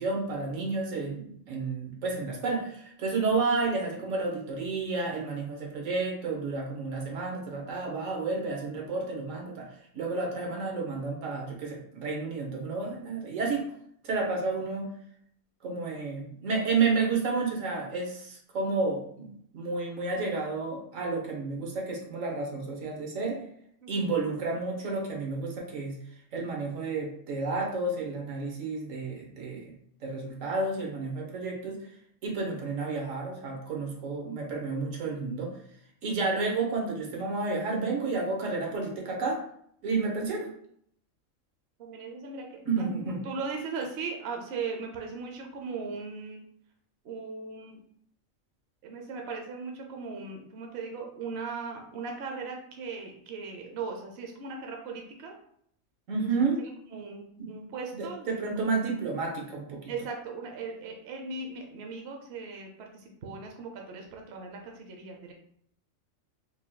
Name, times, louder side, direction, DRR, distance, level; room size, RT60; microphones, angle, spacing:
voice 1, 0.0-9.7 9.9-13.6 14.0-14.9 15.6-23.4 23.9-26.0 26.3-29.7 30.0-31.8 32.2-35.5 36.0-39.4 39.8-40.5 42.7-43.2 56.1-56.6 57.4-57.5 57.9-59.8, right 3 dB, 85° right, 0 dB, 1.3 m, -31 dB
voice 2, 41.8-42.6 43.0-46.4 47.0-47.8 48.8-55.3 56.2-56.3 56.9-58.3 58.6-58.7 59.9-65.3, right 4 dB, 60° right, 2 dB, 0.9 m, -38 dB
4.9 x 2.9 x 2.2 m, 0.68 s
omnidirectional pair, 1.3 m